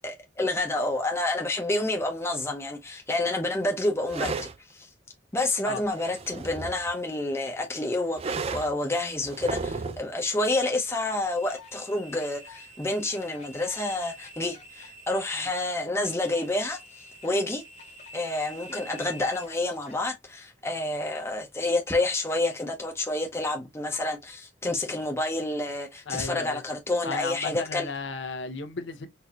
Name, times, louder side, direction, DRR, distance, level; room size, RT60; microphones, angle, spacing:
voice 1, 0.0-4.9 5.3-17.6 18.1-27.9, left 2 dB, 15° left, 0.6 m, -29 dB
sound 1, 4.1-4.6 5.7-6.9 8.2-8.7 9.2-10.1, right 4 dB, 35° right, 0.4 m, -33 dB
sound 2, 11.3-20.0, left 1 dB, 40° left, 1.0 m, -47 dB
voice 2, 26.1-26.6 27.0-29.1, left 4 dB, 85° left, 0.7 m, -34 dB
4.2 x 2.6 x 2.3 m
head